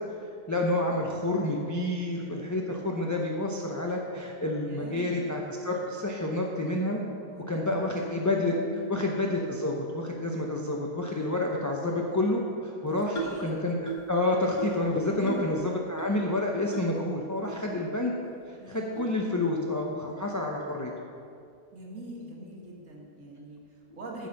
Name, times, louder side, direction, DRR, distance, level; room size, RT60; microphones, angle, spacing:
voice 1, 0.2-7.0 7.5-8.5 8.9-18.1 18.5-20.9, left 2 dB, 20° left, -1 dB, 0.5 m, -29 dB
voice 2, 4.6-5.3 7.3-7.9 8.6-9.0 12.9-13.6 15.1-15.5 18.6-19.1 21.7-24.3, right 1 dB, 60° right, -2 dB, 2.1 m, -43 dB
sound 1, 13.2-13.5 13.9-14.2 14.6-14.9 15.3-15.5 16.0-16.1 16.7-16.9 17.4-17.5 18.2-18.3 19.0-19.1, right 5 dB, 80° left, 1.6 m, -35 dB
9.7 x 6.5 x 6.4 m, 2.4 s
omnidirectional pair, 1.5 m